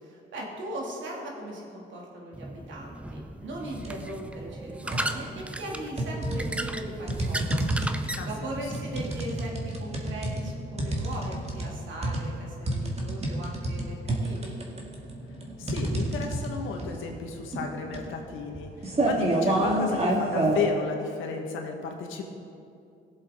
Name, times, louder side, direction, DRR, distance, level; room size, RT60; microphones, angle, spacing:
voice 1, 0.0-14.6, right 1 dB, 70° right, -2 dB, 2.6 m, -39 dB
sound 1, 2.3-9.2, right 1 dB, 5° right, 0.6 m, -36 dB
sound 2, 3.7-4.1 4.5-5.4 6.0-20.7, right 1 dB, 30° right, 2.0 m, -29 dB
voice 2, 8.2-8.6 15.6-22.3, left 5 dB, 85° left, 2 dB, 1.6 m, -33 dB
17.5 x 7.5 x 3.8 m, 2.5 s
cardioid pair, 90°, 20 cm